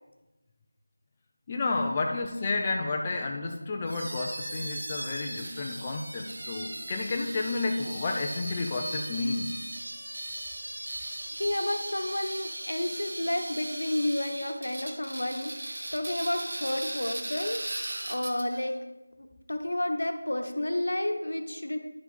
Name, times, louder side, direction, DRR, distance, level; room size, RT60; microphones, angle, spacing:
voice 1, 1.5-9.6, left 3 dB, 20° left, 1 dB, 0.5 m, -31 dB
sound 1, 3.9-18.7, right 1 dB, 60° right, 1.3 m, -38 dB
voice 2, 11.4-17.7 18.1-18.8 19.2-21.8, left 1 dB, 75° left, 6 dB, 1.1 m, -31 dB
10.5 x 5.6 x 4.3 m, 1.1 s
figure-of-eight pair, 170°, 0 cm